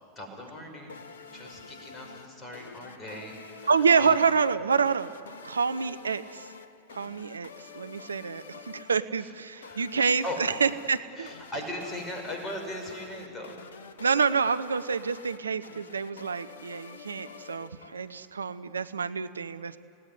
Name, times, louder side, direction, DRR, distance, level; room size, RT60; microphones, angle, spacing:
voice 1, 0.2-4.1 9.1-10.4 11.2-13.6, left 1 dB, 15° left, 2 dB, 5.8 m, -39 dB
sound 1, 0.9-18.3, left 5 dB, 65° left, 1.1 m, -48 dB
voice 2, 3.7-5.1 5.4-6.5 6.9-11.3 14.0-19.8, right 5 dB, 75° right, 13 dB, 0.7 m, -27 dB
29.0 x 18.0 x 9.7 m, 2.6 s
figure-of-eight pair, 90°, 0 cm